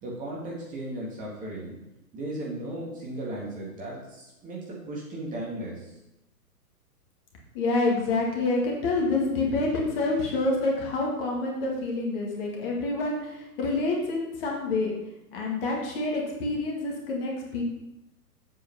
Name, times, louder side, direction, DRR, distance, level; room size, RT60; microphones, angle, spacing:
voice 1, 0.0-1.8 2.1-5.9, right 1 dB, 15° right, -4 dB, 1.8 m, -36 dB
voice 2, 7.5-14.9 15.3-17.6, left 2 dB, 35° left, -1 dB, 2.0 m, -27 dB
7.9 x 4.6 x 5.8 m, 0.90 s
figure-of-eight pair, 120°, 47 cm